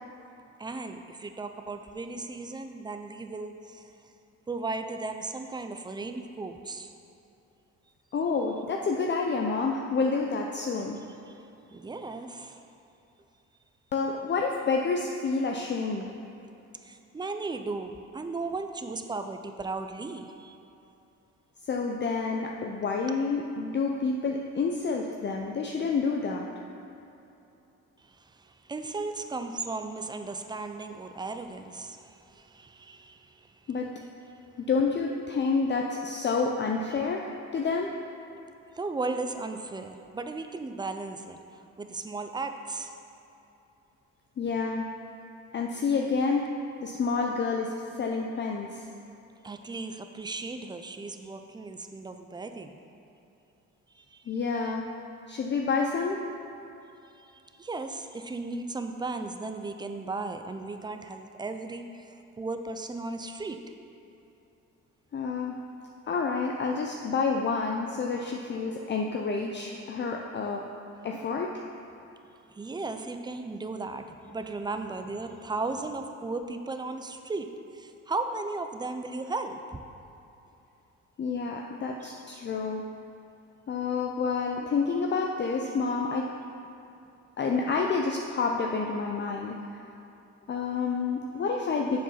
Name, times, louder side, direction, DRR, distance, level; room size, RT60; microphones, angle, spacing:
voice 1, 0.6-3.9 4.5-6.9 11.3-11.4 11.7-12.6 16.8-20.6 28.0-33.7 36.9-37.0 38.7-42.9 49.4-52.8 53.9-54.3 54.6-54.7 57.1-63.6 72.5-79.8 82.0-82.1, right 3 dB, 15° right, 7 dB, 0.5 m, -36 dB
voice 2, 8.1-11.0 13.9-16.1 21.7-26.5 33.7-33.9 34.6-37.9 44.4-44.9 45.5-46.5 46.8-47.7 48.0-48.9 54.3-54.9 55.3-56.2 65.1-65.6 66.1-70.6 71.0-71.6 81.2-82.9 83.7-86.3 87.4-89.6 90.5-92.0, left 4 dB, 35° left, 1 dB, 0.5 m, -29 dB
7.2 x 4.7 x 5.7 m, 2.9 s
cardioid pair, 90°, 30 cm